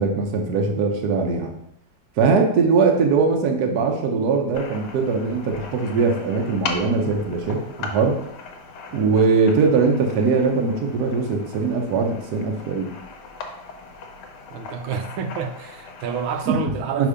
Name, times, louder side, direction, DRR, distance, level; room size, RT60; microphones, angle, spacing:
voice 1, 0.0-1.5 2.2-8.2 8.9-12.9 16.5-16.6 17.0-17.1, right 4 dB, 60° right, 3 dB, 1.3 m, -21 dB
sound 1, 4.5-16.5, left 4 dB, 65° left, 1.3 m, -38 dB
voice 2, 14.5-17.1, right 6 dB, 90° right, 6 dB, 1.4 m, -29 dB
5.5 x 3.6 x 4.9 m, 0.76 s
omnidirectional pair, 2.1 m